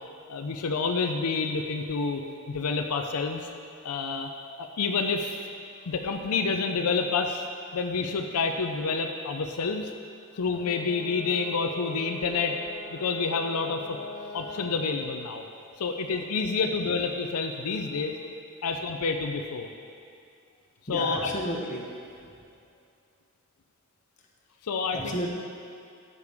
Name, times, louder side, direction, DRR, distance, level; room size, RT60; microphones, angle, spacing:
voice 1, 0.3-2.2 2.5-3.4 3.8-4.3 4.6-5.5 5.9-7.4 7.7-9.9 10.3-12.6 12.9-14.0 14.3-15.4 15.8-18.1 18.6-19.7 20.9-21.3 24.6-25.3, left 4 dB, 90° left, 4 dB, 0.5 m, -28 dB
Brass instrument, 10.5-14.9, left 1 dB, 55° left, 1.5 m, -42 dB
voice 2, 15.1-15.8 16.4-16.6 17.5-18.1 20.9-22.0 22.2-22.4 24.9-25.3, equal, 35° left, -2 dB, 1.2 m, -36 dB
13.0 x 6.8 x 3.5 m, 2.4 s
head